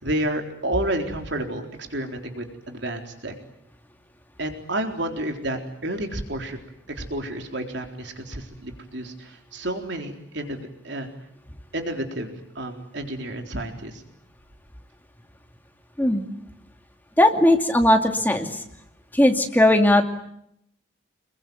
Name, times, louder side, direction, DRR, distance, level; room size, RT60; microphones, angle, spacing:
voice 1, 0.0-3.3 4.4-6.6 6.9-11.1 11.7-14.0, right 1 dB, 60° right, 4 dB, 4.0 m, -30 dB
voice 2, 17.2-18.6 19.1-20.0, left 1 dB, 10° left, 4 dB, 2.5 m, -18 dB
27.0 x 22.5 x 9.5 m, 0.74 s
head